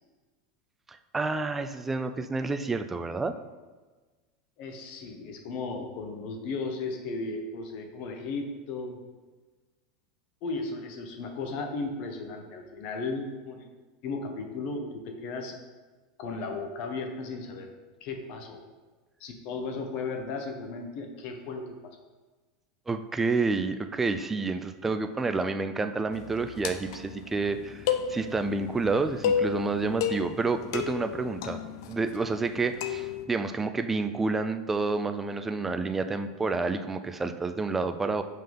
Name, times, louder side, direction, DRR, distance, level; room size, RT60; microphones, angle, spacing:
voice 1, 0.9-3.4 22.9-27.8 28.1-31.6 31.9-38.2, right 3 dB, 10° right, 8 dB, 0.3 m, -29 dB
voice 2, 4.6-9.0 10.4-13.7 14.0-15.6 16.2-17.7 18.0-18.6 19.2-21.9, left 3 dB, 50° left, 4 dB, 0.9 m, -35 dB
sound 1, 26.1-33.3, left 7 dB, 70° left, 0.5 m, -33 dB
5.5 x 3.9 x 5.2 m, 1.3 s
supercardioid pair, 150°, 2 cm